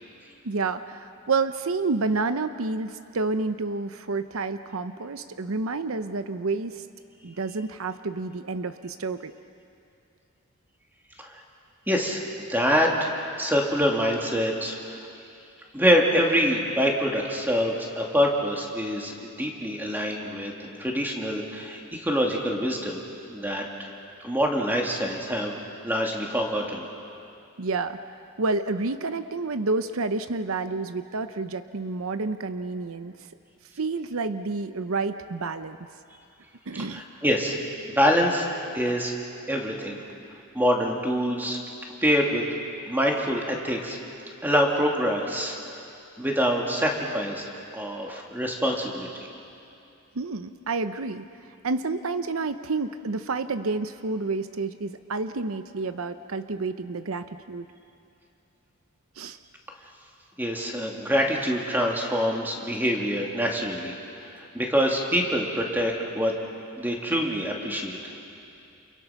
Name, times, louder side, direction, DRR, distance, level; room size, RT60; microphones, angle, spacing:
voice 1, 0.4-6.9 7.2-9.3 27.6-28.0 28.4-33.1 33.8-35.8 36.7-37.0 50.1-51.2 51.6-57.7 59.2-59.4, right 3 dB, 80° right, 10 dB, 0.8 m, -29 dB
voice 2, 11.9-15.1 15.7-23.0 23.3-23.9 24.2-26.9 36.9-37.6 37.9-38.5 38.7-39.2 39.5-40.0 40.5-41.6 42.0-42.4 42.9-44.0 44.4-45.6 46.2-47.5 47.7-49.3 60.4-63.9 64.2-66.3 66.8-68.0, equal, 10° right, 0 dB, 2.6 m, -25 dB
29.5 x 28.5 x 5.9 m, 2.7 s
head